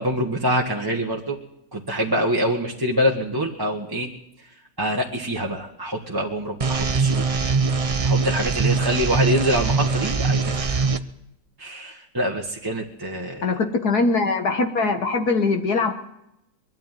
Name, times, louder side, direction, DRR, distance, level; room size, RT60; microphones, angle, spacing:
voice 1, 0.0-1.4 1.7-4.1 4.4-4.5 4.8-7.2 8.0-10.8 11.6-13.5, equal, 15° right, -1 dB, 1.4 m, -25 dB
sound 1, 6.6-11.0, right 4 dB, 45° right, 0.4 m, -22 dB
voice 2, 13.4-15.9, left 3 dB, 60° left, 5 dB, 1.9 m, -22 dB
22.5 x 13.0 x 9.2 m, 0.82 s
omnidirectional pair, 2.0 m